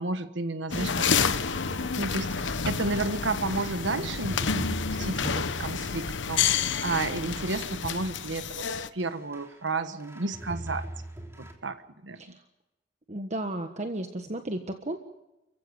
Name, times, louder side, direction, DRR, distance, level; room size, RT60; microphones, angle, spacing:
voice 1, 0.0-1.3 1.7-10.9 11.4-12.4, right 3 dB, 80° right, 10 dB, 1.4 m, -32 dB
sound 1, 0.7-8.9, left 6 dB, 90° left, 1.0 m, -29 dB
sound 2, 1.0-3.1 3.7-8.7 9.0-9.7 10.0-11.5, right 1 dB, 15° right, 3.3 m, -42 dB
voice 2, 13.1-15.0, right 1 dB, 40° right, 6 dB, 1.4 m, -34 dB
30.0 x 15.5 x 8.2 m, 0.97 s
head